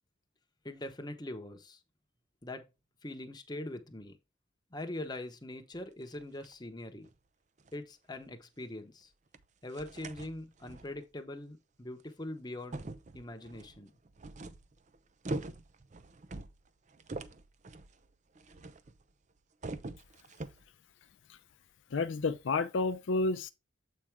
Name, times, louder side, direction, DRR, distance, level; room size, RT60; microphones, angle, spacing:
voice 1, 0.6-1.8 2.4-2.6 3.0-4.2 4.7-7.1 7.7-9.1 9.6-12.8 13.1-13.9, left 1 dB, 20° left, 0.9 m, -42 dB
sound 1, 5.7-6.5 7.0-7.2 7.6-7.7 8.1-8.2 9.3-9.5 9.7-11.0 12.0-12.1 12.6-19.1 19.4-20.7, right 2 dB, 40° right, 0.5 m, -44 dB
voice 2, 21.9-23.5, left 3 dB, 80° left, 0.5 m, -30 dB
7.5 x 4.5 x 3.5 m
head